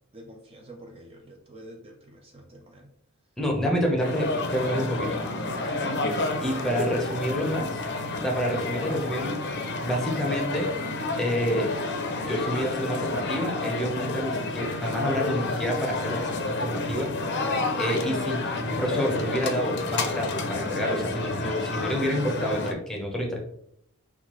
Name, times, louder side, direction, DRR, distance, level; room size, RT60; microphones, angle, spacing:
voice 1, 0.1-2.9 5.5-6.4, right 1 dB, 25° right, 1 dB, 0.4 m, -46 dB
voice 2, 3.4-5.2 6.4-7.8 8.2-9.4 9.8-10.7 11.2-11.7 12.3-17.1 17.8-23.4, equal, ahead, 0 dB, 0.8 m, -28 dB
sound 1, 4.0-22.7, left 2 dB, 50° left, 0.5 m, -30 dB
5.7 x 2.4 x 3.0 m, 0.70 s
head